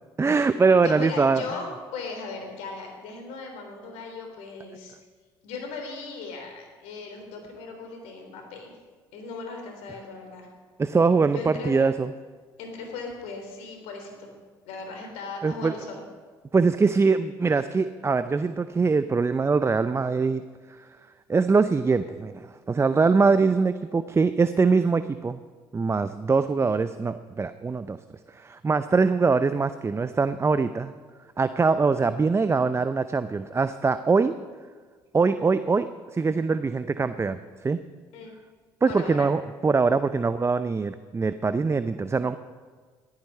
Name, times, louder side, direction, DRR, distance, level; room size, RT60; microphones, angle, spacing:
voice 1, 0.2-1.4 10.8-12.1 15.4-15.7 16.5-20.4 20.8-20.9 21.3-25.4 25.7-28.0 28.3-30.9 31.4-34.3 35.1-35.9 36.1-37.8 38.8-42.4, right 4 dB, 25° right, 12 dB, 0.6 m, -23 dB
voice 2, 0.8-5.0 5.4-8.7 9.1-10.5 11.3-11.8 12.6-14.3 14.7-16.0 38.1-38.3 38.9-39.3, left 4 dB, 75° left, 4 dB, 3.4 m, -37 dB
14.5 x 13.0 x 5.5 m, 1.5 s
hypercardioid pair, 60°, 11 cm